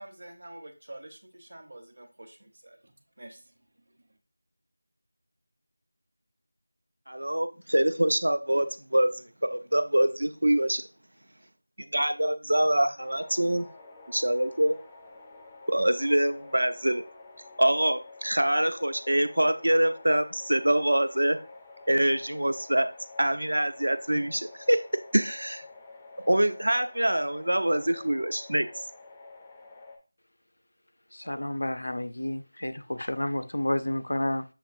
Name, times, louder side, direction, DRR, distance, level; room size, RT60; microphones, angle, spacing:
voice 1, 0.0-3.4, right 1 dB, 55° right, 6 dB, 0.8 m, -47 dB
voice 2, 7.1-10.8 11.9-13.7 14.1-14.8 15.7-17.0 17.6-21.4 21.9-22.9 23.2-24.8 25.1-25.6 26.3-28.7, right 1 dB, 80° right, 9 dB, 0.5 m, -25 dB
sound 1, 13.0-30.0, left 3 dB, 10° left, 0.4 m, -49 dB
voice 3, 31.1-34.5, left 1 dB, 70° left, 10 dB, 0.4 m, -30 dB
6.6 x 2.5 x 2.6 m, 0.33 s
figure-of-eight pair, 175°, 0 cm